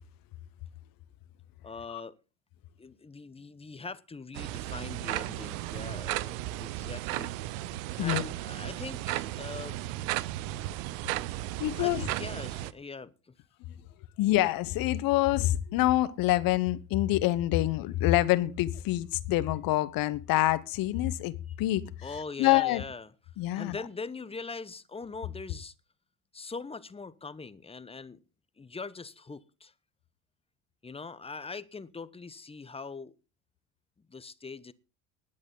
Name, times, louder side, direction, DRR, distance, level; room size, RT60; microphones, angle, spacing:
voice 1, 1.6-2.2 2.8-7.4 8.0-9.8 11.8-13.3 22.0-23.1 23.5-25.7 26.3-28.2 28.6-29.7 30.8-33.1 34.1-34.7, left 4 dB, 15° left, 0.9 m, -42 dB
sound 1, 4.3-12.7, right 16 dB, 70° right, 0.8 m, -35 dB
voice 2, 11.6-12.0 14.2-21.8 22.4-22.8 23.4-23.8, left 16 dB, 55° left, 1.2 m, -26 dB
20.0 x 8.7 x 3.9 m
hypercardioid pair, 75°, 41 cm